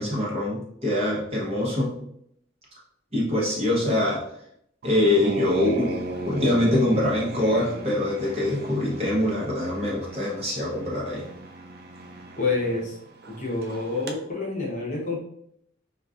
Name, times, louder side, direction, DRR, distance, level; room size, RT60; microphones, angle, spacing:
voice 1, 0.0-1.9 3.1-4.2 4.8-5.9 6.3-11.2, left 1 dB, 30° right, -5 dB, 0.9 m, -24 dB
sound 1, 4.8-14.2, right 2 dB, 55° right, 0.4 m, -36 dB
voice 2, 12.4-13.0 13.3-15.2, left 3 dB, 40° left, -3 dB, 0.8 m, -28 dB
3.9 x 2.4 x 2.4 m, 0.71 s
head